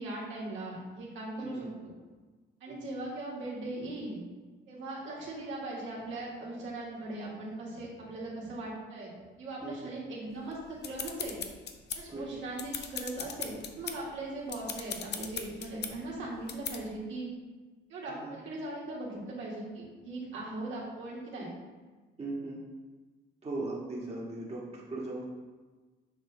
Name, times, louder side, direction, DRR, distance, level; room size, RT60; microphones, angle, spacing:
voice 1, 0.0-1.7 2.6-4.2 4.7-11.4 11.9-17.3 17.9-21.5, right 2 dB, 75° right, -5 dB, 1.8 m, -39 dB
sound 1, 10.5-12.2 12.5-14.0 14.4-15.9 16.5-16.8, left 7 dB, 60° left, 0.6 m, -38 dB
voice 2, 12.1-12.4 18.1-18.4 22.2-22.6 23.4-25.2, right 2 dB, 30° right, -5 dB, 1.5 m, -38 dB
6.7 x 4.2 x 3.3 m, 1.3 s
cardioid pair, 90°, 20 cm